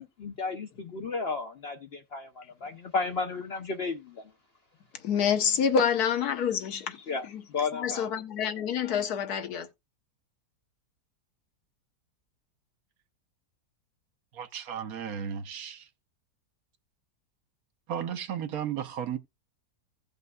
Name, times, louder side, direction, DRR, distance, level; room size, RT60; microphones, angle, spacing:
voice 1, 0.0-4.2 7.1-8.1, left 4 dB, 55° left, 0.7 m, -33 dB
voice 2, 4.9-7.4 7.7-9.7, left 7 dB, 70° left, 1.4 m, -27 dB
voice 3, 14.3-15.9 17.9-19.2, right 8 dB, 65° right, 1.2 m, -34 dB
16.0 x 5.3 x 2.2 m
omnidirectional pair, 1.7 m